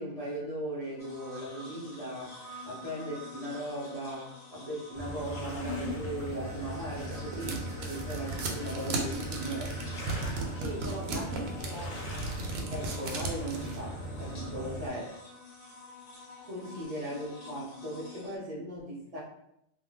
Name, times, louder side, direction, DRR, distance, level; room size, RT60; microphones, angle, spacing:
voice 1, 0.0-9.7 11.1-11.2 12.7-15.1 16.5-19.2, right 1 dB, 45° right, -5 dB, 0.5 m, -38 dB
sound 1, 1.0-18.4, left 3 dB, 75° left, 1.3 m, -47 dB
sound 2, 4.9-14.9, right 1 dB, 50° left, 0.8 m, -39 dB
sound 3, 6.5-13.8, right 3 dB, 90° right, 1.0 m, -36 dB
voice 2, 10.1-12.0 13.7-13.9 14.4-14.7 16.7-17.2, right 1 dB, 35° left, -6 dB, 0.4 m, -45 dB
2.5 x 2.2 x 3.2 m, 0.79 s
omnidirectional pair, 1.4 m